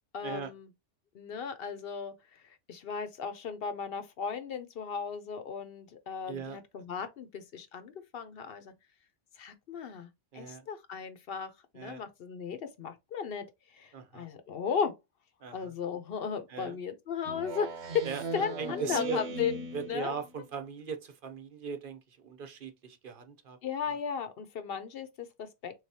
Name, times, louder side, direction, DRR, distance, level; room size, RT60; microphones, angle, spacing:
voice 1, 0.1-0.7 1.1-8.7 9.4-14.9 15.5-18.1 18.3-19.6 19.9-20.1 23.6-25.7, left 6 dB, 60° left, 0.8 m, -36 dB
voice 2, 6.3-6.6 10.3-10.7 11.7-12.0 13.9-14.3 15.4-15.7 16.5-16.8 18.0-18.2 18.6-19.2 19.7-23.6 23.9-24.0, right 5 dB, 55° right, 0.9 m, -39 dB
Speech synthesizer, 17.3-20.3, right 2 dB, 75° right, 1.1 m, -38 dB
3.8 x 3.2 x 2.7 m
omnidirectional pair, 1.2 m